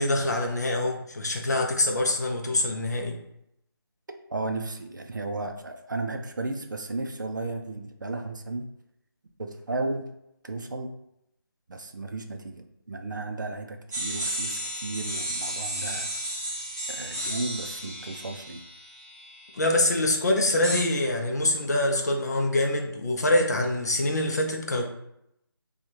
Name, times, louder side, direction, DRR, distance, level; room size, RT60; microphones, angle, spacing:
voice 1, 0.0-3.2 19.5-24.9, left 1 dB, 45° left, 1 dB, 0.6 m, -25 dB
voice 2, 4.3-8.6 9.4-10.1 10.4-11.0 11.7-16.1 16.9-18.6, right 2 dB, 50° right, 5 dB, 0.5 m, -34 dB
sound 1, 13.9-19.6 20.6-20.8, right 1 dB, 10° right, 1.1 m, -33 dB
4.5 x 2.3 x 2.8 m, 0.79 s
figure-of-eight pair, 170°, 13 cm